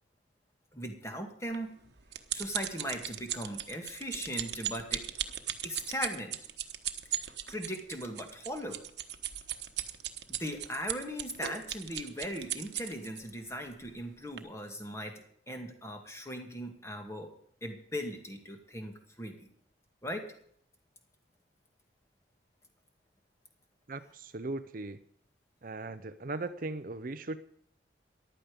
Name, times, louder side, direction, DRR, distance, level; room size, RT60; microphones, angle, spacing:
voice 1, 0.7-1.8 2.3-5.0 5.6-6.4 7.5-8.8 10.4-17.3 17.6-19.5 20.0-20.3, equal, 15° left, 4 dB, 2.1 m, -39 dB
sound 1, 1.5-13.2 13.8-14.0 14.4-14.5, right 12 dB, 65° right, 1.2 m, -37 dB
voice 2, 23.9-25.0 25.6-27.4, right 2 dB, 45° right, 12 dB, 0.6 m, -38 dB
15.0 x 11.5 x 5.1 m, 0.64 s
head